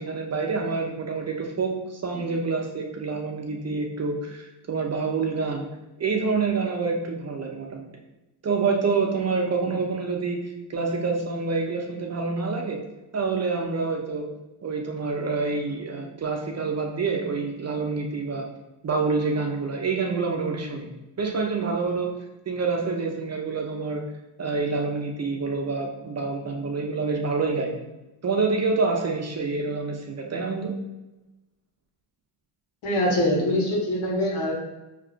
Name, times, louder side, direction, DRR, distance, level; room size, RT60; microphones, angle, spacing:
voice 1, 0.0-5.7 6.0-7.9 8.4-12.8 13.1-14.3 14.6-18.5 18.8-20.9 21.2-22.1 22.5-24.0 24.4-27.7 28.2-30.7, right 4 dB, 35° right, 1 dB, 0.6 m, -27 dB
voice 2, 32.8-34.5, left 1 dB, 75° left, -2 dB, 1.4 m, -23 dB
4.8 x 2.9 x 2.4 m, 1.0 s
cardioid pair, 95°, 49 cm